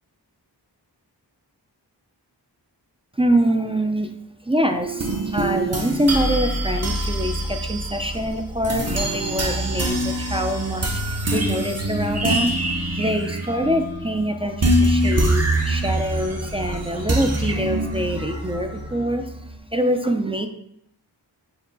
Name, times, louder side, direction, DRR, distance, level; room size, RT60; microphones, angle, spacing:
voice 1, 3.2-4.1 4.5-19.4 19.7-20.5, right 1 dB, 15° right, 5 dB, 0.3 m, -24 dB
sound 1, 4.8-19.6, right 1 dB, 35° right, 0.7 m, -24 dB
4.5 x 3.0 x 3.8 m, 0.78 s
wide cardioid pair, 50°, 43 cm